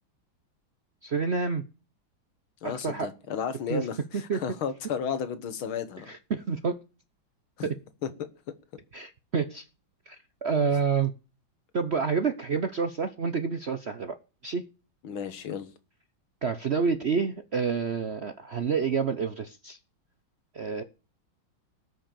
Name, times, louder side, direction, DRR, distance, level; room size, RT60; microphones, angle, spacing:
voice 1, 1.0-1.6 2.6-3.1 3.7-3.9 4.3-4.4 6.1-6.8 7.6-7.8 8.9-9.7 10.1-11.1 11.7-14.2 14.4-14.6 16.4-19.8 20.5-20.8, right 5 dB, 65° right, 0.6 m, -28 dB
voice 2, 2.6-6.1 7.6-7.7 8.0-8.1 15.0-15.7, left 7 dB, 75° left, 2.2 m, -33 dB
18.5 x 6.5 x 6.8 m
omnidirectional pair, 2.3 m